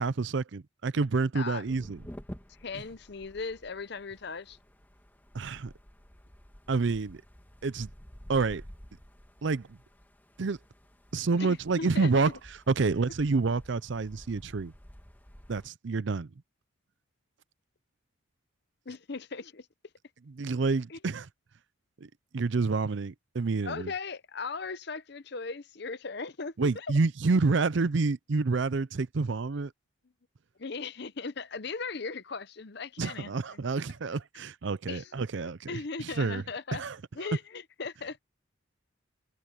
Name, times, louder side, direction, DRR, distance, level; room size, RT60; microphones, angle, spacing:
voice 1, 0.0-2.0 5.3-5.7 6.7-7.2 7.6-7.9 8.3-8.6 9.4-9.8 10.4-10.6 11.1-12.4 12.7-14.7 15.5-16.3 20.3-21.3 22.0-23.9 26.6-29.7 33.0-36.4 36.7-37.3, right 4 dB, 60° right, 0.5 m, -28 dB
sound 1, 1.6-15.7, equal, 10° left, 1.7 m, -51 dB
voice 2, 2.6-4.6 11.4-12.3 18.9-19.7 20.9-21.0 23.6-26.9 30.6-33.6 34.9-35.1 35.7-36.8 37.1-38.2, left 4 dB, 55° left, 0.7 m, -38 dB
head